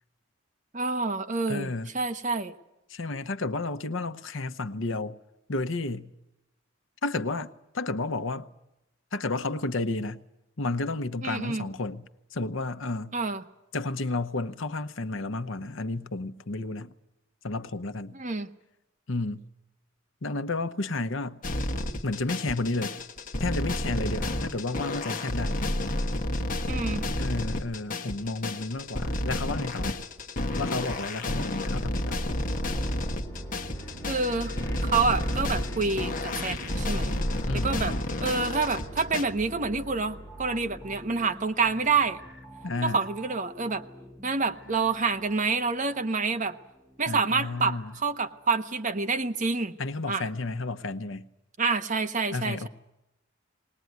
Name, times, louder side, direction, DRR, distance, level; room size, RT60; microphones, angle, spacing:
voice 1, 0.7-2.5 11.2-11.6 13.1-13.4 18.1-18.5 26.7-27.0 34.1-34.5 34.8-37.2 37.6-37.9 38.2-42.2 42.8-43.8 44.2-46.6 47.0-49.7 50.1-50.2 51.6-52.7, right 4 dB, 40° right, 1.1 m, -28 dB
voice 2, 1.5-1.9 2.9-5.2 5.5-6.1 7.0-8.5 9.1-10.2 10.6-13.2 13.7-16.9 17.4-18.2 19.1-19.5 20.2-21.4 22.0-23.0 23.4-25.6 27.2-30.0 30.6-32.2 37.5-38.0 42.6-43.0 47.1-47.9 49.8-51.2 52.3-52.7, left 2 dB, 70° left, 1.0 m, -32 dB
sound 1, 21.4-39.2, left 1 dB, 40° left, 1.4 m, -31 dB
sound 2, 31.3-41.5, equal, 15° left, 3.8 m, -39 dB
sound 3, 40.3-49.6 49.9-50.1, right 1 dB, ahead, 1.8 m, -49 dB
20.0 x 19.5 x 9.5 m
head